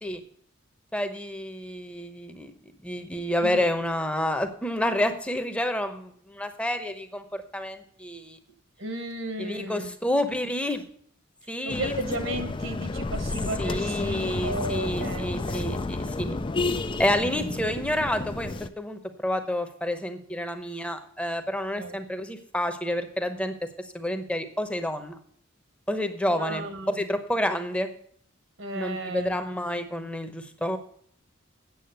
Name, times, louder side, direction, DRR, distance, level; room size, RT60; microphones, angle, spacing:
voice 1, 0.9-2.5 2.8-8.4 9.4-10.8 11.5-11.9 13.6-16.4 17.0-23.5 23.9-25.2 25.9-27.9 28.7-30.8, left 1 dB, 5° left, 7 dB, 0.9 m, -29 dB
voice 2, 8.8-9.9 11.6-15.7 17.2-17.6 21.7-22.0 26.3-27.0 28.6-29.4, right 1 dB, 70° right, 8 dB, 1.4 m, -34 dB
sound 1, 11.7-18.7, left 3 dB, 25° left, 0.4 m, -31 dB
8.6 x 7.4 x 7.9 m, 0.62 s
head